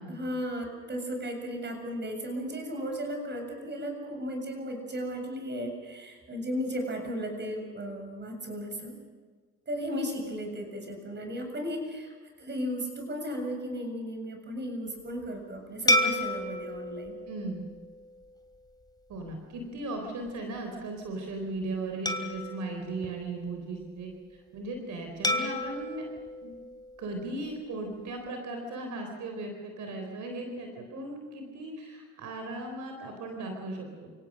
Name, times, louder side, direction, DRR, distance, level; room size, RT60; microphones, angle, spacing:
voice 1, 0.1-8.9 9.7-17.2, equal, 35° right, 4 dB, 7.5 m, -35 dB
glass sounds long, 15.9-18.6 19.1-19.3 22.1-23.8 25.2-27.5, left 1 dB, 15° left, 2.8 m, -32 dB
voice 2, 17.3-17.7 19.1-24.1 24.5-26.1 26.4-26.5 27.0-34.1, right 2 dB, 75° right, 3 dB, 4.2 m, -37 dB
29.0 x 17.5 x 6.5 m, 1.5 s
cardioid pair, 90°, 30 cm